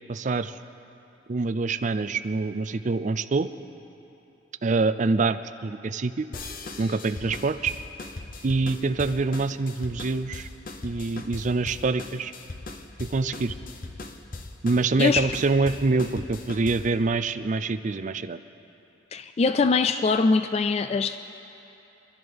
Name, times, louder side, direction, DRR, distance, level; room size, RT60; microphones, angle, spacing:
voice 1, 0.1-0.6 1.3-3.5 4.6-6.3 6.8-7.7 8.4-10.5 10.8-12.3 13.0-13.5 14.6-18.4, right 3 dB, 40° right, 11 dB, 0.4 m, -25 dB
sound 1, 6.3-17.0, left 2 dB, 50° left, 0.9 m, -39 dB
voice 2, 19.1-21.2, left 4 dB, 35° left, 10 dB, 0.3 m, -22 dB
25.5 x 12.5 x 3.5 m, 3.0 s
head